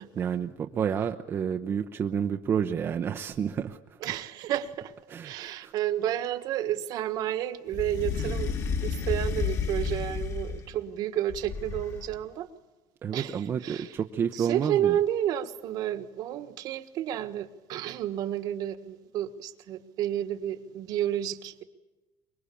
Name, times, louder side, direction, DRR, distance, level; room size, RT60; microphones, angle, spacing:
voice 1, 0.2-4.0 5.1-5.7 13.0-15.0, right 7 dB, 30° right, 0.8 m, -30 dB
voice 2, 4.0-4.9 5.2-8.5 8.8-12.5 13.1-13.4 13.6-21.6, right 11 dB, 55° right, 1.5 m, -31 dB
sound 1, 7.7-10.8 11.3-12.2, left 5 dB, 40° left, 2.2 m, -31 dB
24.0 x 22.0 x 8.5 m
cardioid pair, 155°, 8 cm